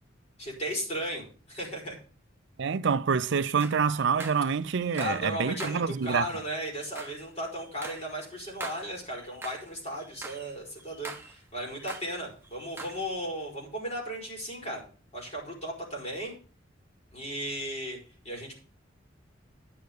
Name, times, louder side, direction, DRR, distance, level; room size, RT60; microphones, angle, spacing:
voice 1, 0.4-2.0 4.9-14.8 15.1-16.3 17.1-18.0 18.2-18.5, equal, 35° left, 5.4 m, -35 dB
voice 2, 2.6-6.3, right 6 dB, 65° right, 0.5 m, -27 dB
sound 1, 3.3-5.3 5.6-9.7 10.0-12.2 12.4-13.1, right 3 dB, 10° right, 1.3 m, -44 dB
10.5 x 6.6 x 6.7 m
head